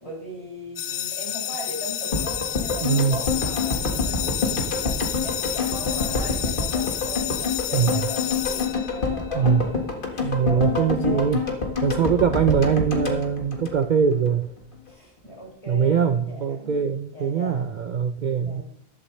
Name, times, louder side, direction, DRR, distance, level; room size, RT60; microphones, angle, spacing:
voice 1, 0.0-11.3 14.9-16.8 17.1-17.6 18.5-18.6, right 1 dB, 30° left, -4 dB, 6.1 m, -38 dB
sound 1, 0.8-9.4, left 12 dB, 85° left, 0.9 m, -30 dB
sound 2, 2.1-14.3 14.6-14.7, left 4 dB, 50° left, 1.9 m, -27 dB
voice 2, 2.8-3.2 7.7-8.0 9.3-9.6 10.2-11.4 11.8-14.5 15.7-18.6, right 7 dB, 50° right, 8 dB, 0.7 m, -22 dB
14.0 x 12.5 x 3.3 m, 0.71 s
omnidirectional pair, 1.1 m